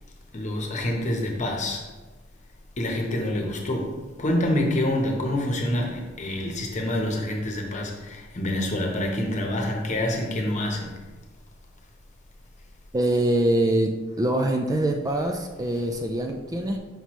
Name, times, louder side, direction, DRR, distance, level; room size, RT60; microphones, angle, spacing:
voice 1, 0.3-1.9 2.8-11.0 15.1-15.2, left 1 dB, 35° left, 1 dB, 1.0 m, -27 dB
voice 2, 12.9-16.8, right 1 dB, 20° right, 3 dB, 0.3 m, -24 dB
5.9 x 5.3 x 3.1 m, 1.2 s
head